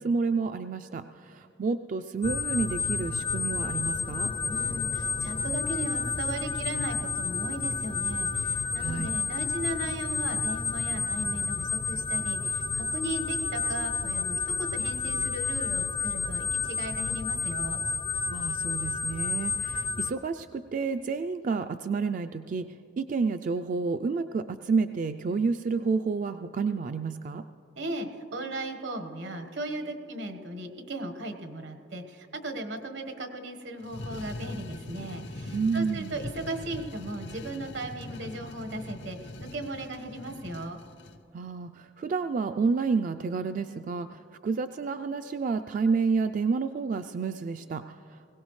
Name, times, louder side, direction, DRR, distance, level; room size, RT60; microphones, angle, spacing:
voice 1, 0.0-4.3 8.8-9.1 18.3-22.7 23.0-27.4 35.5-36.2 41.3-48.3, right 4 dB, 45° right, 8 dB, 0.3 m, -30 dB
sound 1, 2.2-20.1, left 4 dB, 30° left, 0.4 m, -30 dB
voice 2, 4.5-17.8 27.8-40.8, right 1 dB, 80° right, 6 dB, 1.3 m, -37 dB
sound 2, 33.8-41.2, left 2 dB, 75° left, 0.7 m, -41 dB
21.0 x 17.5 x 3.2 m, 2.7 s
head